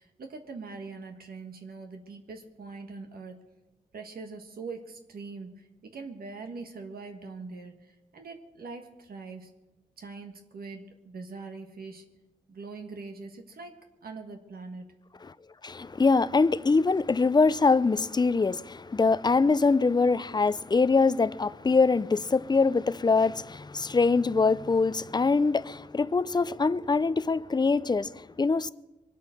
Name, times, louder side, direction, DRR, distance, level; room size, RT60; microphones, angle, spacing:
voice 1, 0.0-3.3 3.9-5.7 5.9-9.5 10.0-12.0 12.5-14.9, right 4 dB, 75° right, 1.6 m, -42 dB
voice 2, 15.6-28.7, left 4 dB, 25° left, 0.5 m, -24 dB
22.5 x 8.3 x 6.5 m
cardioid pair, 60°, 16 cm